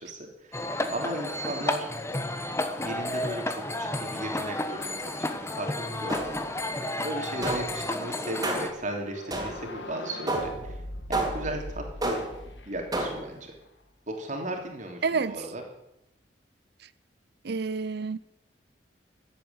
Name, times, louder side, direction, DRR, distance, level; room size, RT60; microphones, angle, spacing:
voice 1, 0.0-1.9 2.8-6.7 7.0-10.7 11.1-12.2 12.6-13.5 14.1-15.6, right 1 dB, 45° right, 3.1 m, -36 dB
sound 1, 0.5-8.7, left 1 dB, 15° left, 1.2 m, -32 dB
sound 2, 6.1-6.6 7.4-7.9 8.4-8.8 9.3-9.8 10.3-10.7 11.1-11.6 12.0-12.5 12.9-13.4, right 2 dB, 20° right, 3.4 m, -31 dB
sound 3, 9.0-13.8, left 1 dB, 75° left, 1.6 m, -41 dB
voice 2, 15.0-15.5 17.4-18.2, right 4 dB, 60° right, 0.6 m, -29 dB
14.5 x 8.9 x 9.5 m
head